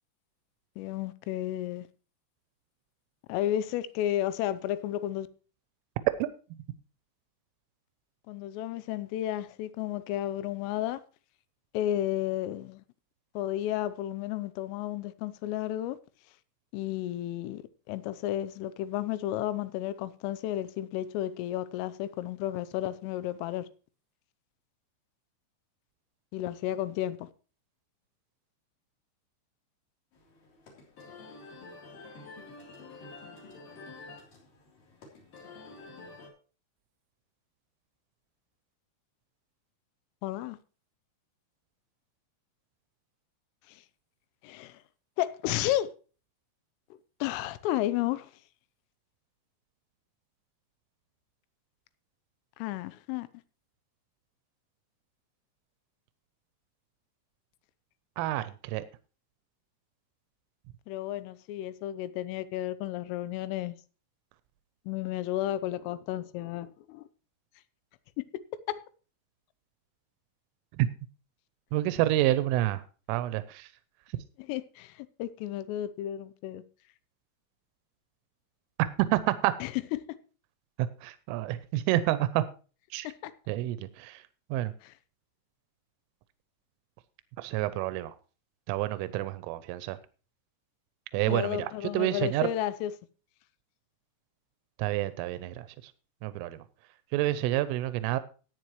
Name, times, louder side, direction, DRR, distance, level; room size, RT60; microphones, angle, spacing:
voice 1, 0.8-1.9 3.3-5.3 8.3-11.0 11.7-12.8 13.4-16.0 16.7-23.7 26.3-27.3 40.2-40.6 43.7-43.8 44.4-44.8 45.2-45.9 47.2-48.3 52.6-53.3 60.9-63.8 64.9-67.0 68.2-68.4 68.7-68.8 74.4-76.6 79.6-80.0 83.1-83.3 84.8-84.9 91.3-92.9, left 13 dB, 90° left, 3.4 m, -32 dB
sound 1, 30.1-36.3, left 3 dB, 45° left, 4.6 m, -48 dB
voice 2, 58.2-58.9 70.8-70.9 71.7-72.8 73.1-73.7 79.1-79.5 80.8-82.4 82.9-83.1 83.5-84.2 84.5-84.7 87.4-88.1 88.7-90.0 91.1-92.5 94.8-95.9 96.2-96.6 97.1-98.2, right 15 dB, 85° right, 3.3 m, -28 dB
15.0 x 9.3 x 3.1 m
omnidirectional pair, 5.7 m